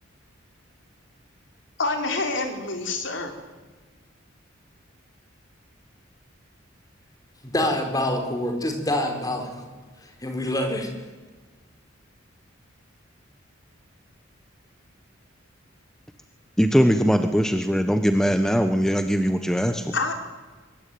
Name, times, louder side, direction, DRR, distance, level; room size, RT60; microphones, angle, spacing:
voice 1, 1.8-3.3 19.9-20.1, left 3 dB, 65° left, 5 dB, 4.1 m, -27 dB
voice 2, 7.4-9.7 10.0-10.9, left 1 dB, 20° left, 5 dB, 4.6 m, -26 dB
voice 3, 16.6-19.9, equal, 5° left, 7 dB, 1.2 m, -21 dB
24.5 x 22.0 x 9.5 m, 1.4 s
head